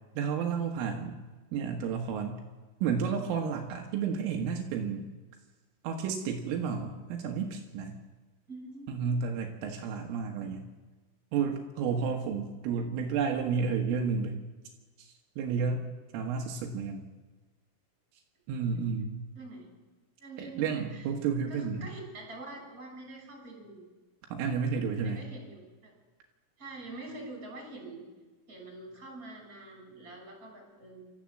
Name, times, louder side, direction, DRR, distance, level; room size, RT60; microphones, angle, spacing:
voice 1, 0.2-1.2 1.5-2.4 2.8-5.1 5.8-8.0 8.9-10.7 11.3-14.4 15.0-15.8 16.1-17.0 18.5-19.2 20.4-21.9 24.3-25.2, right 6 dB, 80° right, 2 dB, 4.0 m, -31 dB
voice 2, 8.5-9.0 18.8-18.9 19.3-19.7 20.2-21.1 21.5-23.8 25.0-25.9 26.6-28.0 28.5-31.1, right 2 dB, 15° right, 0 dB, 6.3 m, -45 dB
26.0 x 14.0 x 7.7 m, 1.3 s
omnidirectional pair, 5.8 m